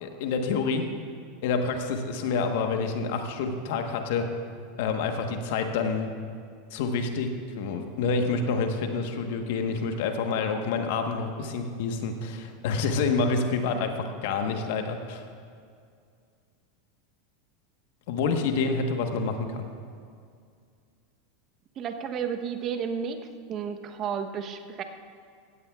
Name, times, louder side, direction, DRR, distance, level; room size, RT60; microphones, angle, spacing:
voice 1, 0.0-0.9 1.4-4.3 4.8-6.1 6.7-13.9 14.2-15.3 18.1-19.7, left 4 dB, 65° left, 5 dB, 1.3 m, -28 dB
voice 2, 21.8-23.2 23.5-24.8, right 7 dB, 40° right, 7 dB, 1.0 m, -32 dB
16.0 x 15.5 x 2.4 m, 2.2 s
hypercardioid pair, 95°, 0 cm